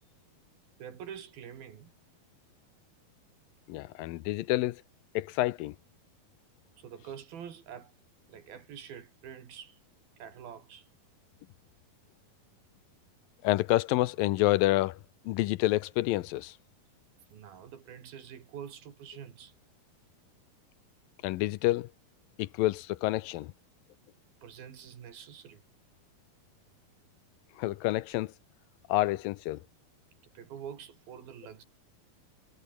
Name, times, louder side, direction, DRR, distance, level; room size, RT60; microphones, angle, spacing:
voice 1, 0.8-1.9 6.8-7.9 8.3-9.8 10.2-10.9 17.3-19.5 24.4-25.6 30.3-31.6, right 8 dB, 75° right, 4.5 m, -46 dB
voice 2, 3.7-4.8 5.1-5.8 13.4-15.0 15.3-16.6 21.2-21.9 22.4-23.5 27.6-28.3 28.9-29.6, left 17 dB, 80° left, 2.3 m, -28 dB
omnidirectional pair, 4.4 m